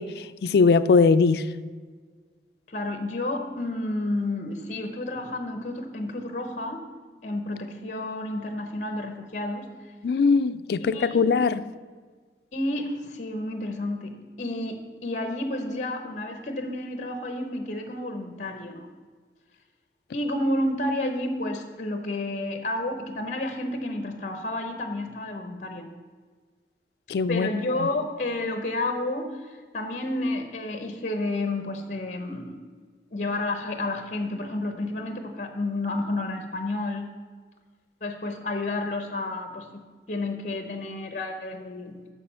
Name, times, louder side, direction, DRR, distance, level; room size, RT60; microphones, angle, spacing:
voice 1, 0.0-1.4 10.0-11.6 27.1-27.5 27.8-27.9, left 4 dB, 60° left, 0.3 m, -21 dB
voice 2, 2.7-6.8 7.2-9.7 10.9-11.3 12.5-18.9 20.1-25.9 27.3-32.6 33.1-37.1 38.0-39.8 40.1-42.0, left 2 dB, 45° left, 0.7 m, -30 dB
6.9 x 6.5 x 5.6 m
head